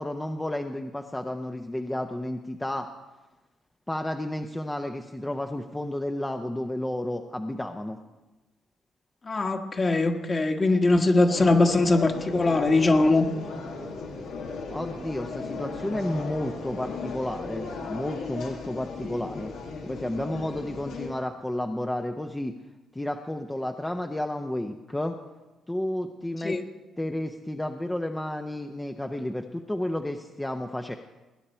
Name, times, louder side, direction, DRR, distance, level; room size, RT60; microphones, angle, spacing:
voice 1, 0.0-2.9 3.9-8.0 14.7-19.5 19.8-22.5 22.9-25.2 25.7-26.6 27.0-30.9, left 1 dB, 10° left, 5 dB, 0.7 m, -31 dB
voice 2, 9.2-13.3 26.4-26.6, left 2 dB, 30° left, 4 dB, 1.5 m, -21 dB
sound 1, 11.3-21.1, left 4 dB, 85° left, 2.1 m, -36 dB
20.0 x 9.9 x 4.4 m, 1.1 s
cardioid pair, 90°, 0 cm